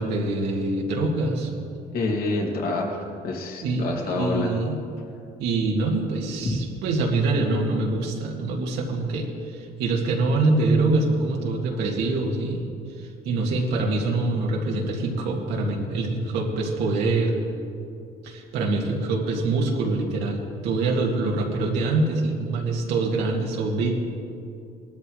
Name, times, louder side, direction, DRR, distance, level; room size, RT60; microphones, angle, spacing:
voice 1, 0.0-1.5 3.6-4.8 5.4-12.7 13.0-17.3 18.2-23.9, right 3 dB, 90° right, -1 dB, 2.2 m, -25 dB
voice 2, 1.9-4.5 6.4-6.6, left 2 dB, 65° left, -1 dB, 2.5 m, -27 dB
19.5 x 13.0 x 3.3 m, 2.5 s
cardioid pair, 110°, 17 cm